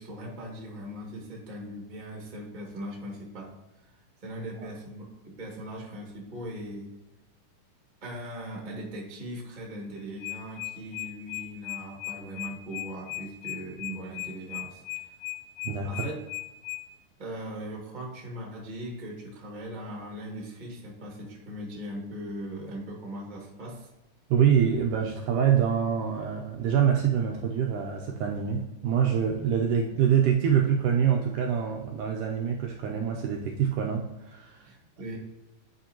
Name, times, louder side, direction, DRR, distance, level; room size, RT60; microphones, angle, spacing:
voice 1, 0.0-6.9 8.0-15.2 15.8-16.3 17.2-23.9 34.6-35.2, right 1 dB, 25° right, -1 dB, 0.9 m, -39 dB
sound 1, 10.0-16.8, left 18 dB, 80° left, 2.4 m, -36 dB
voice 2, 24.3-34.7, right 8 dB, 80° right, 1 dB, 1.9 m, -25 dB
10.5 x 4.5 x 2.9 m, 1.0 s
omnidirectional pair, 4.3 m